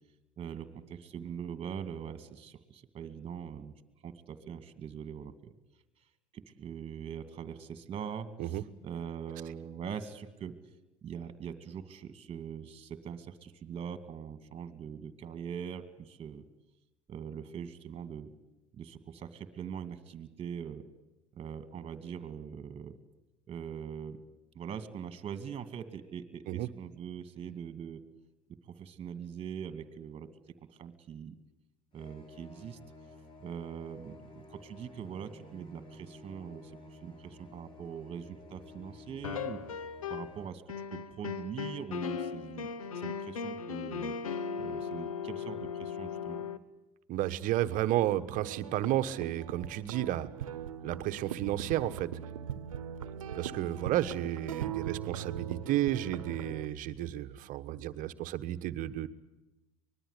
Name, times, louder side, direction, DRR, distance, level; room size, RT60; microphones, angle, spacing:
voice 1, 0.4-3.7 4.0-5.5 6.3-10.6 11.0-16.4 17.1-18.3 18.8-20.9 21.3-22.9 23.5-24.2 24.5-28.0 28.5-30.3 30.7-31.4 31.9-32.8 33.4-39.6 40.1-40.6 40.9-42.7 42.9-44.2 44.6-46.4, right 8 dB, 35° right, 11 dB, 2.3 m, -42 dB
sound 1, 31.9-40.5, left 2 dB, 30° left, 5.3 m, -53 dB
sound 2, 39.2-40.4 40.7-46.6, left 6 dB, 85° left, 1.2 m, -37 dB
voice 2, 47.1-50.3 50.8-52.1 53.3-59.1, right 13 dB, 50° right, 13 dB, 1.2 m, -32 dB
sound 3, 48.3-56.7, right 9 dB, 85° right, 1.0 m, -40 dB
24.5 x 20.5 x 8.3 m, 1.0 s
hypercardioid pair, 80°, 17 cm